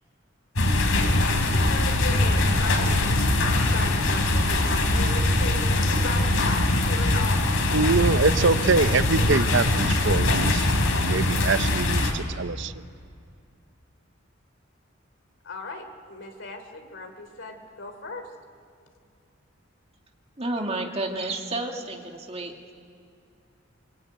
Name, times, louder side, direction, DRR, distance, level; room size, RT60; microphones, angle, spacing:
sound 1, 0.6-12.1, left 2 dB, 90° left, 3.4 m, -22 dB
voice 1, 1.1-3.4 3.7-7.6 15.4-18.3, left 3 dB, 65° left, 5 dB, 3.0 m, -36 dB
voice 2, 7.7-10.7 11.0-12.7, right 4 dB, 60° right, 13 dB, 0.7 m, -24 dB
voice 3, 20.4-22.5, right 2 dB, 30° right, 2 dB, 2.2 m, -30 dB
23.5 x 23.5 x 9.4 m, 2.3 s
head